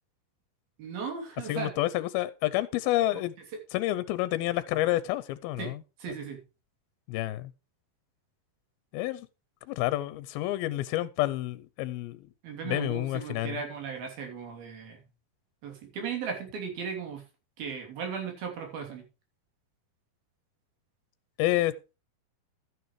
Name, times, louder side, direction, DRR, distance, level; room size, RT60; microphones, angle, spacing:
voice 1, 0.8-1.7 5.6-5.7 6.0-6.4 12.4-15.0 15.6-17.2 17.6-19.0, right 6 dB, 75° right, 4.9 m, -36 dB
voice 2, 1.5-3.3 3.7-5.8 7.1-7.5 8.9-9.3 9.7-12.3 12.6-13.6 21.4-21.7, left 15 dB, 85° left, 2.5 m, -29 dB
12.5 x 9.7 x 3.2 m
omnidirectional pair, 4.3 m